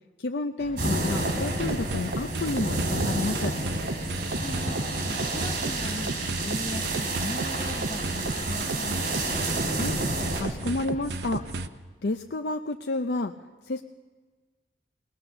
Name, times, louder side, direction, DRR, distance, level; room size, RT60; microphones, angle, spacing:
voice 1, 0.2-3.5 9.7-10.0 10.3-11.5 12.0-13.3 13.6-13.8, left 2 dB, 75° left, 6 dB, 0.6 m, -30 dB
sound 1, 0.6-11.7, equal, 45° left, 1.7 m, -45 dB
sound 2, 0.8-10.4, right 2 dB, 55° right, 6.2 m, -30 dB
sound 3, 1.1-11.7, right 2 dB, 75° right, 0.7 m, -34 dB
voice 2, 4.4-4.8 5.1-8.9, left 1 dB, 25° left, 3 dB, 1.6 m, -38 dB
21.0 x 20.0 x 6.8 m, 1.4 s
head